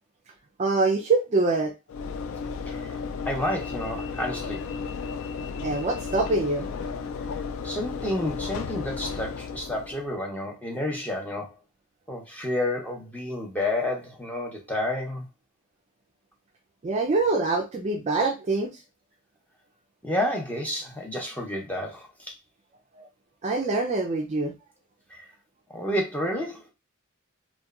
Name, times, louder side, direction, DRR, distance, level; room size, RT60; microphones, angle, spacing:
voice 1, 0.6-1.7 5.6-6.7 16.8-18.8 22.9-23.1 23.4-24.5, right 3 dB, 35° right, 0.3 m, -24 dB
Train / Engine / Alarm, 1.9-10.1, left 5 dB, 70° left, 0.3 m, -34 dB
voice 2, 3.3-4.6 7.6-11.5 12.1-15.3 20.0-22.3 25.1-25.3 25.7-26.7, left 1 dB, 5° left, 0.6 m, -30 dB
2.8 x 2.1 x 2.3 m
head